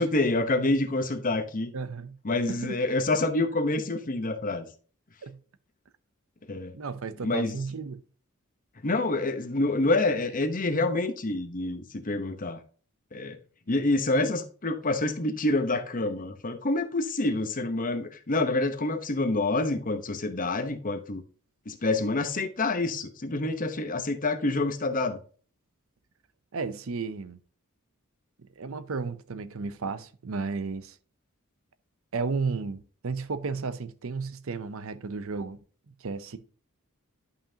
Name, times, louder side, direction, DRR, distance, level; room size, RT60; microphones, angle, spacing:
voice 1, 0.0-1.7 2.2-4.7 6.5-6.7 7.2-7.6 8.8-12.6 13.1-13.4 13.7-21.2 21.7-25.2, left 2 dB, 40° left, 1.0 m, -27 dB
voice 2, 1.7-2.2 2.5-2.7 5.2-5.4 6.7-8.0 26.5-27.4 28.6-31.0 32.1-35.6 36.0-36.4, right 4 dB, 70° right, 0.6 m, -33 dB
11.0 x 5.7 x 2.8 m
head